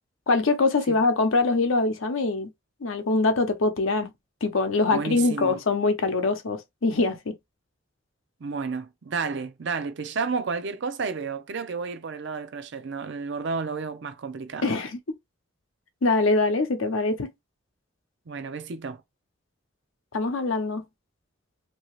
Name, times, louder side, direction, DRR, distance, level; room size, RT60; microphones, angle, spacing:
voice 1, 0.3-2.5 2.8-4.1 4.4-7.3 14.6-15.0 16.0-17.3 20.1-20.8, left 3 dB, 80° left, 0.7 m, -23 dB
voice 2, 4.9-5.6 8.4-14.7 18.3-19.0, right 4 dB, 60° right, 0.5 m, -31 dB
2.8 x 2.7 x 3.0 m
head